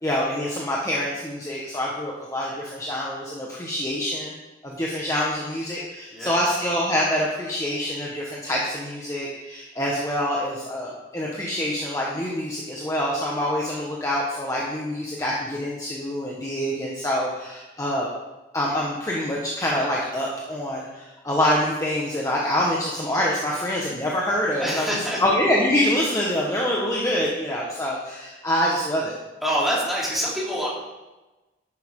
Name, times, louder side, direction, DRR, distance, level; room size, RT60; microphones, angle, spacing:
voice 1, 0.0-4.3 4.6-18.1 18.5-29.1, left 1 dB, 20° left, -4 dB, 1.3 m, -26 dB
voice 2, 24.6-25.2 29.4-30.7, equal, ahead, -7 dB, 3.3 m, -25 dB
11.5 x 9.6 x 3.8 m, 1.1 s
head